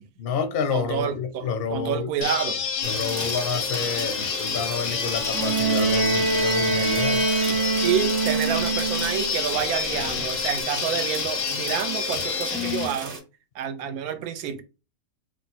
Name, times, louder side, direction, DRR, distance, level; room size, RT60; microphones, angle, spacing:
voice 1, 0.2-2.1 2.8-7.3, left 6 dB, 60° left, 0.6 m, -29 dB
voice 2, 0.7-2.6 7.8-13.2 13.5-14.6, right 9 dB, 85° right, 1.1 m, -28 dB
sound 1, 2.2-12.9, left 6 dB, 90° left, 1.2 m, -28 dB
sound 2, 2.8-13.2, right 3 dB, 35° right, 0.7 m, -36 dB
Bowed string instrument, 5.3-9.4 10.6-10.7, right 4 dB, 65° right, 1.0 m, -24 dB
3.2 x 2.0 x 4.1 m
omnidirectional pair, 1.5 m